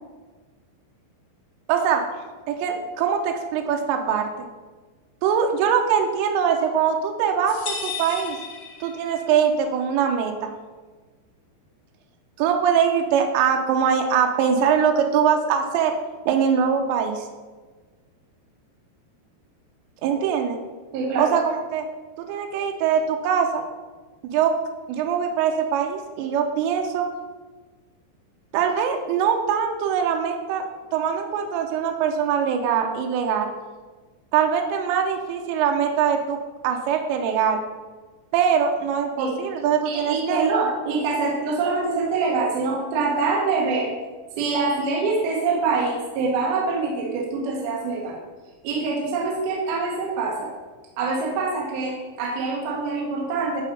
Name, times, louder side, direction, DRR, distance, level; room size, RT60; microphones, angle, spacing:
voice 1, 1.7-2.0 2.5-4.3 5.2-8.4 8.8-10.5 12.4-15.9 16.3-17.3 20.0-20.6 21.2-21.9 22.3-23.6 24.2-24.5 24.9-27.1 28.5-30.7 30.9-33.5 34.3-36.4 36.6-37.6 38.3-40.5, right 7 dB, 85° right, 3 dB, 2.9 m, -22 dB
sound 1, 7.5-9.4, left 5 dB, 75° left, 1.6 m, -34 dB
voice 2, 20.9-21.3 39.2-39.3 39.9-43.9 44.4-48.2 48.6-50.5 51.0-53.6, right 4 dB, 70° right, -2 dB, 2.8 m, -25 dB
11.0 x 4.2 x 5.2 m, 1.3 s
omnidirectional pair, 5.0 m